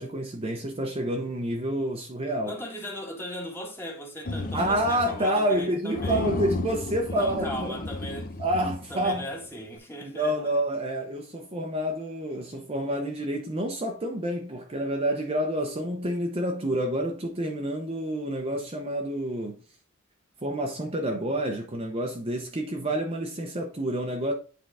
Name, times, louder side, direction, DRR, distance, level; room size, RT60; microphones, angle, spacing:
voice 1, 0.0-2.6 4.5-7.7 8.4-9.3 10.0-19.6 20.4-24.3, right 1 dB, 25° right, 0.8 m, -28 dB
voice 2, 2.4-6.3 7.1-8.3 8.9-10.4, equal, 10° left, 1.7 m, -38 dB
sound 1, 4.3-5.3 5.5-5.6 5.9-9.3, left 2 dB, 40° left, 0.9 m, -33 dB
8.8 x 3.9 x 3.4 m
head